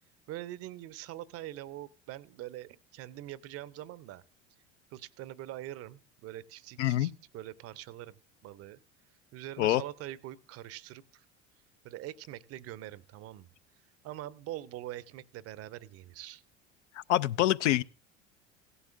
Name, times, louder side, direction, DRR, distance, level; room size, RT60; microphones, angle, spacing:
voice 1, 0.3-4.2 4.9-8.1 8.4-8.8 9.3-11.2 11.8-13.5 14.0-16.4, right 14 dB, 40° right, 0.6 m, -43 dB
voice 2, 6.8-7.1 9.6-9.8 17.1-17.8, left 14 dB, 70° left, 0.5 m, -25 dB
16.0 x 11.0 x 2.5 m
hypercardioid pair, 75°, 37 cm